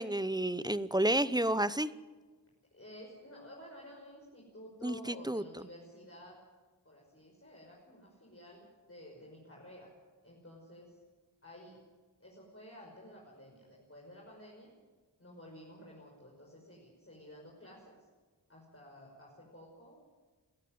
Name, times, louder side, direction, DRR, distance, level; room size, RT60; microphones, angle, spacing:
voice 1, 0.0-1.9 4.8-5.4, right 1 dB, 10° right, 16 dB, 0.8 m, -30 dB
voice 2, 2.7-6.4 6.8-9.9 10.2-11.0 11.4-11.8 12.2-14.7 15.2-18.0 18.5-20.0, equal, 30° left, -3 dB, 5.8 m, -52 dB
22.0 x 14.0 x 9.5 m, 1.4 s
wide cardioid pair, 50°, 43 cm